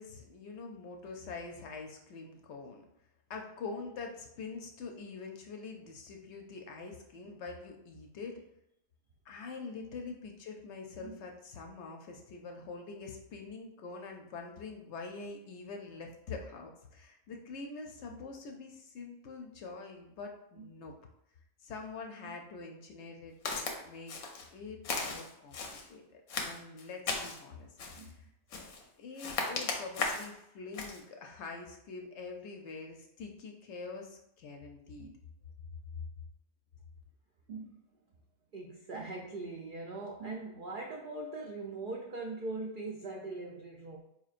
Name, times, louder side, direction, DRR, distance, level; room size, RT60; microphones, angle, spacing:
voice 1, 0.0-2.8 3.3-8.4 9.2-20.9 21.6-24.2 24.5-25.6 25.9-28.3 29.0-35.1, left 4 dB, 65° left, 2 dB, 0.8 m, -45 dB
Walk footsteps, 23.5-23.8 24.1-24.5 24.8-25.9 26.3-27.4 27.8-28.1 28.5-28.8 29.2-30.3 30.7-31.0, left 4 dB, 85° left, 1.1 m, -36 dB
voice 2, 37.5-37.8 38.5-44.0, right 3 dB, 75° right, 0 dB, 0.4 m, -41 dB
4.3 x 3.0 x 2.4 m, 0.80 s
omnidirectional pair, 1.4 m